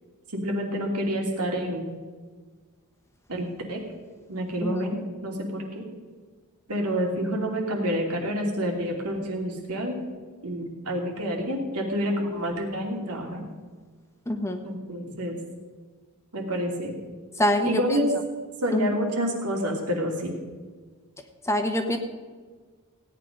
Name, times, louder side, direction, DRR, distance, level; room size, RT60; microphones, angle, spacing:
voice 1, 0.3-1.9 3.3-3.8 4.3-5.8 6.7-10.0 10.4-13.5 14.6-15.4 16.3-17.0 17.7-18.1 18.6-20.4, equal, 85° right, 0 dB, 2.9 m, -28 dB
voice 2, 14.3-14.6 17.4-18.0 18.7-19.0 21.4-22.0, left 1 dB, 10° left, 6 dB, 1.1 m, -25 dB
17.0 x 9.6 x 5.3 m, 1.5 s
head